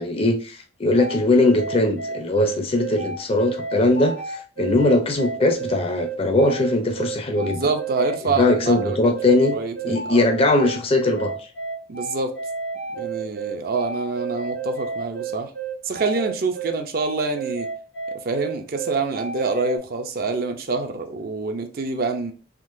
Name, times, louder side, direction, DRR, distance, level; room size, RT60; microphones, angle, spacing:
voice 1, 0.0-7.7 8.2-9.6 9.9-11.5, left 2 dB, 30° left, 0.5 m, -20 dB
sound 1, 1.0-19.8, right 5 dB, 75° left, 1.5 m, -31 dB
voice 2, 7.4-10.3 11.9-12.3 12.9-15.5 15.8-17.7 18.2-22.3, right 3 dB, 50° right, 0.5 m, -26 dB
3.6 x 2.8 x 2.5 m
head